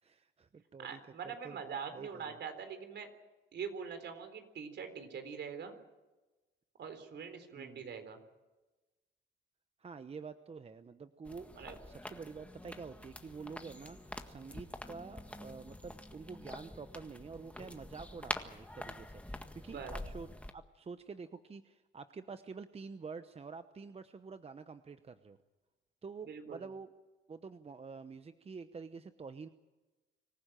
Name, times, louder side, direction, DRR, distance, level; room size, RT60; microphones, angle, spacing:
voice 1, 0.0-2.4 7.5-7.8 9.8-25.4 26.0-26.9 27.3-29.5, right 5 dB, 30° right, 10 dB, 0.9 m, -48 dB
voice 2, 0.8-3.1 3.5-5.7 6.8-8.2 11.5-11.8 19.7-19.9 26.2-26.6, right 6 dB, 60° right, 8 dB, 3.9 m, -43 dB
sound 1, 11.2-20.5, left 1 dB, 5° left, 1.7 m, -46 dB
25.5 x 15.0 x 9.1 m, 1.1 s
cardioid pair, 90°, 20 cm